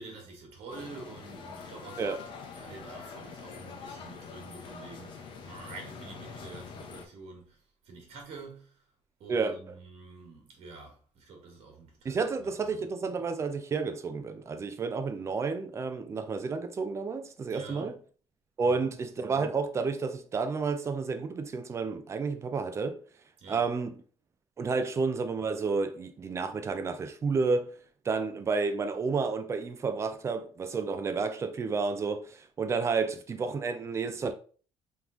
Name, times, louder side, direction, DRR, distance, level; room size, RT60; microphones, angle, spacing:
voice 1, 0.0-2.2 2.6-7.6 7.9-8.7 9.2-12.8 17.5-18.0 18.6-19.0 23.4-23.7, right 3 dB, 60° right, 1.7 m, -47 dB
sound 1, 0.7-7.0, left 5 dB, 45° left, 0.7 m, -45 dB
voice 2, 9.3-9.7 12.0-18.0 18.6-23.0 23.5-24.0 24.6-27.7 28.0-34.3, right 4 dB, 25° right, 0.4 m, -31 dB
3.6 x 3.0 x 3.8 m
cardioid pair, 165°, 12 cm